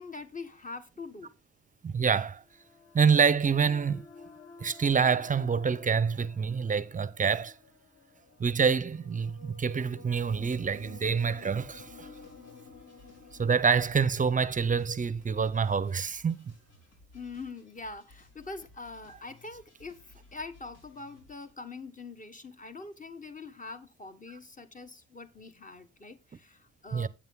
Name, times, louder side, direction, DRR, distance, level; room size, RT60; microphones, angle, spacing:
voice 1, 0.0-1.3 17.1-27.1, left 3 dB, 25° left, 1.3 m, -43 dB
voice 2, 1.8-2.4 2.9-4.1 4.6-7.6 8.4-12.1 13.4-16.5 26.9-27.1, right 6 dB, 25° right, 0.7 m, -26 dB
sound 1, 2.3-16.0, left 5 dB, 45° left, 2.2 m, -53 dB
sound 2, 10.3-21.5, left 3 dB, 75° left, 4.6 m, -59 dB
8.7 x 7.4 x 3.6 m
cardioid pair, 90°, 30 cm